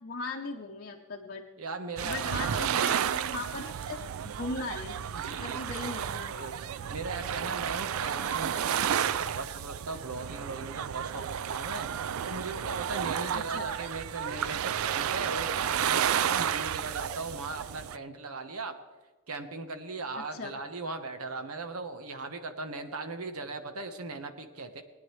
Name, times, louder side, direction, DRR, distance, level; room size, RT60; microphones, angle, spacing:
voice 1, 0.0-1.5 2.0-5.0 5.4-6.5 13.3-13.6 20.2-20.5, left 3 dB, 50° left, 1 dB, 0.8 m, -38 dB
voice 2, 1.6-2.7 5.1-5.6 6.3-6.5 6.9-18.7 19.3-24.8, right 3 dB, 90° right, 6 dB, 1.2 m, -38 dB
sound 1, 2.0-18.0, right 9 dB, 70° right, 0.4 m, -32 dB
20.5 x 9.8 x 3.2 m, 1.3 s
head